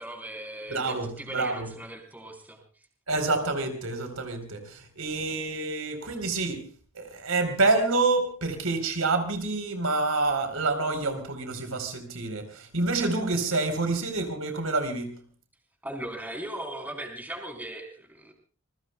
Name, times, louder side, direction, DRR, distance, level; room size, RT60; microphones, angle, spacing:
voice 1, 0.0-2.6 15.8-18.3, right 1 dB, 10° right, 2 dB, 4.3 m, -38 dB
voice 2, 0.7-1.7 3.1-6.6 7.0-15.1, right 3 dB, 90° right, 6 dB, 4.2 m, -27 dB
27.5 x 21.5 x 2.3 m, 0.37 s
head